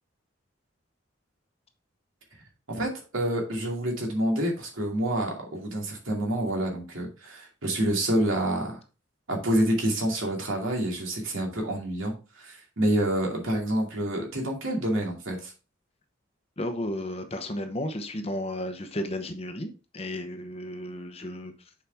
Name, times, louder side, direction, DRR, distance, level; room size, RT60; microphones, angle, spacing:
voice 1, 2.7-8.8 9.3-15.5, right 1 dB, 80° right, 2.4 m, -28 dB
voice 2, 16.6-21.5, left 1 dB, 30° left, 0.9 m, -33 dB
6.9 x 5.1 x 3.5 m
head